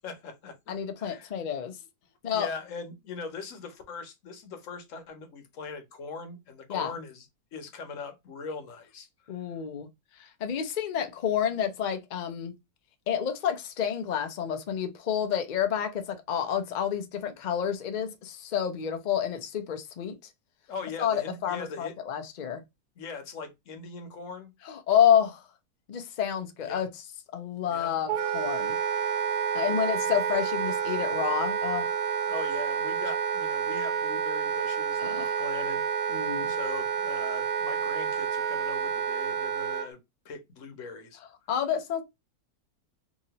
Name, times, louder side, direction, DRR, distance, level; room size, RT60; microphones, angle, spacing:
voice 1, 0.0-1.3 2.3-9.6 20.7-21.9 23.0-24.5 26.6-26.8 27.6-27.9 30.0-30.2 32.3-35.9 36.2-40.0 40.2-41.2, left 4 dB, 60° left, 1.1 m, -41 dB
voice 2, 0.7-1.8 2.2-2.5 6.7-6.9 9.3-9.9 10.2-12.5 13.1-20.2 21.0-22.6 24.7-25.4 25.9-26.9 27.3-28.8 29.5-31.9 35.0-35.4 36.1-36.5 41.5-42.0, left 9 dB, 80° left, 0.4 m, -29 dB
Wind instrument woodwind instrument, 28.1-39.9, right 7 dB, 80° right, 1.2 m, -29 dB
2.9 x 2.7 x 2.8 m
omnidirectional pair, 1.6 m